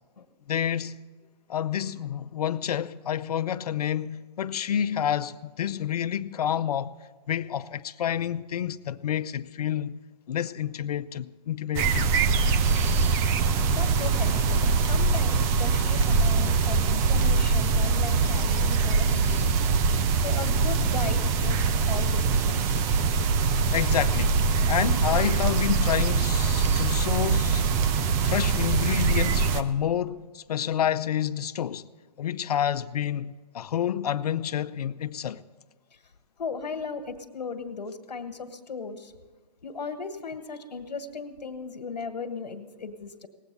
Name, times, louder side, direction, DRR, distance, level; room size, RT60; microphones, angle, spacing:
voice 1, 0.5-1.0 1.5-6.9 7.3-10.0 10.3-12.1 23.7-24.4 24.7-27.6 28.2-31.9 32.2-35.4, left 9 dB, 70° left, 0.6 m, -29 dB
sound 1, 11.7-29.6, right 5 dB, 15° right, 0.3 m, -23 dB
voice 2, 13.7-19.5 20.1-21.6 21.9-22.6 36.4-39.1 39.6-43.3, left 5 dB, 85° left, 1.4 m, -37 dB
18.5 x 8.1 x 6.8 m
hypercardioid pair, 145°, 21 cm